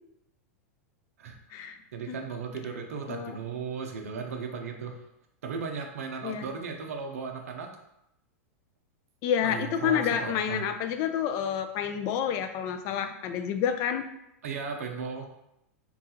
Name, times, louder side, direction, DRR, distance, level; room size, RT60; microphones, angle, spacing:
voice 1, 1.2-4.9 5.4-7.7 9.4-10.6 14.4-15.3, right 5 dB, 80° right, 3 dB, 0.5 m, -36 dB
voice 2, 9.2-14.0, left 8 dB, 45° left, 7 dB, 0.4 m, -29 dB
3.8 x 2.3 x 2.8 m, 0.84 s
hypercardioid pair, 110°, 8 cm